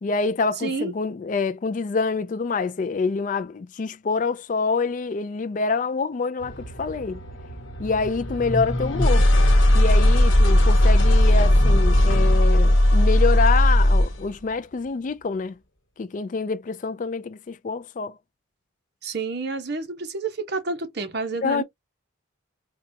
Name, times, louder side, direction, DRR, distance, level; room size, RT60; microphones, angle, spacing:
voice 1, 0.0-7.2 7.8-9.3 9.7-15.6 16.0-18.2 21.4-21.6, left 4 dB, 40° left, 0.3 m, -26 dB
voice 2, 0.6-0.9 19.0-21.6, right 3 dB, 55° right, 0.9 m, -29 dB
sound 1, 6.4-14.2, left 1 dB, 75° left, 1.1 m, -18 dB
3.9 x 2.3 x 2.7 m
head